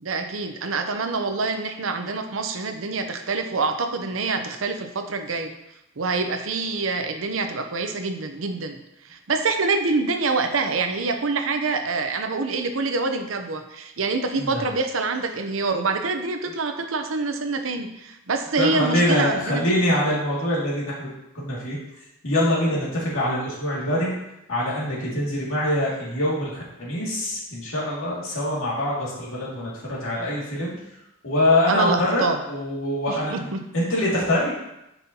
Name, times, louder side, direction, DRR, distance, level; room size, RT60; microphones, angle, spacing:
voice 1, 0.0-5.5 6.0-8.8 9.0-19.6 31.7-32.4 33.1-33.6, right 3 dB, 80° right, 6 dB, 0.7 m, -26 dB
voice 2, 18.6-21.1 21.3-21.8 22.2-24.1 24.5-30.7 31.2-32.2 32.5-34.5, left 1 dB, 80° left, -6 dB, 2.4 m, -24 dB
8.1 x 5.6 x 2.9 m, 0.88 s
head